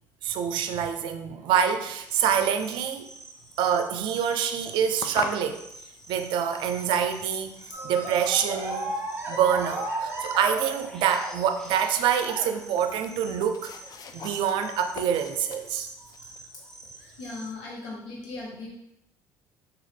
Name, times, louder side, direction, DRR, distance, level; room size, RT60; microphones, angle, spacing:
voice 1, 0.2-3.1 3.6-5.6 6.1-7.5 7.8-9.0 9.3-13.7 14.1-15.9, right 8 dB, 65° right, 7 dB, 0.4 m, -26 dB
sound 1, 1.9-17.5, right 1 dB, 5° left, 0.6 m, -48 dB
sound 2, 3.8-16.4, left 5 dB, 45° left, 0.4 m, -44 dB
sound 3, 7.7-11.7 12.2-12.8 13.8-14.2 14.6-14.7 16.0-16.1 16.9-17.1, right 2 dB, 25° right, 0.9 m, -34 dB
voice 2, 17.2-18.7, left 3 dB, 75° left, -2 dB, 1.0 m, -38 dB
3.6 x 2.3 x 3.4 m, 0.81 s
hypercardioid pair, 65°, 9 cm